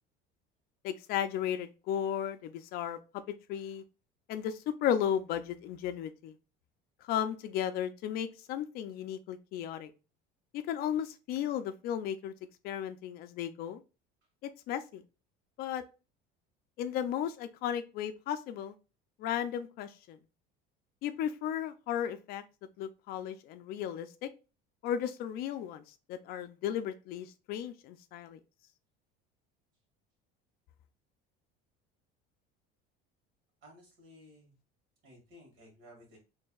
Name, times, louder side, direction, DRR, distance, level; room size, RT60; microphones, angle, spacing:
voice 1, 0.8-3.0 3.3-3.8 4.3-6.4 7.0-9.9 10.5-12.3 12.6-13.8 14.4-15.0 15.6-15.8 16.8-18.7 19.2-20.2 21.0-22.4 22.8-24.3 24.8-25.8 26.1-28.4, left 9 dB, 50° left, 0.4 m, -35 dB
voice 2, 33.6-34.5 35.0-36.2, equal, 65° right, 1.9 m, -56 dB
4.4 x 3.2 x 2.3 m
cardioid pair, 160°, 21 cm